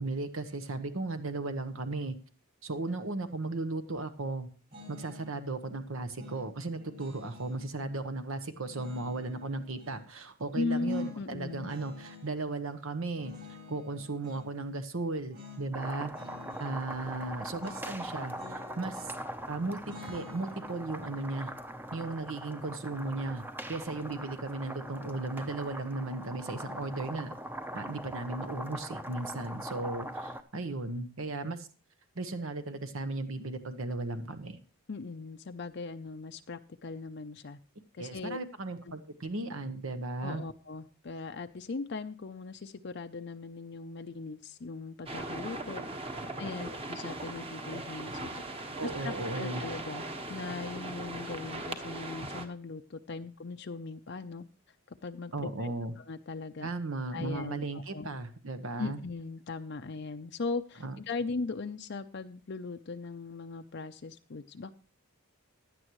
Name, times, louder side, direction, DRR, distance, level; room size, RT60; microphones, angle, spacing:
voice 1, 0.0-2.2 2.6-4.5 4.9-13.3 13.7-16.1 16.6-19.1 19.5-21.5 21.9-27.3 27.7-31.7 32.1-34.6 38.0-40.4 46.6-46.7 48.8-49.6 55.3-55.9 56.6-59.0 60.8-61.0, right 2 dB, 70° right, 9 dB, 1.0 m, -36 dB
sound 1, 4.7-5.4 6.2-7.6 8.7-10.1 10.8-12.3 13.2-14.5 15.3-15.7 15.9-16.7 17.6-19.3 19.8-22.9, left 3 dB, 45° right, 5.3 m, -50 dB
voice 2, 10.5-11.7 34.9-37.6 37.9-38.4 40.2-45.8 46.4-48.3 48.6-54.5 54.9-56.7 57.1-58.1 58.8-64.7, left 3 dB, 50° left, 7 dB, 0.5 m, -39 dB
sound 2, 15.7-30.4, right 1 dB, 10° right, 0.7 m, -41 dB
sound 3, 45.1-52.5, right 2 dB, 25° right, 1.3 m, -39 dB
16.0 x 11.0 x 3.1 m, 0.36 s
head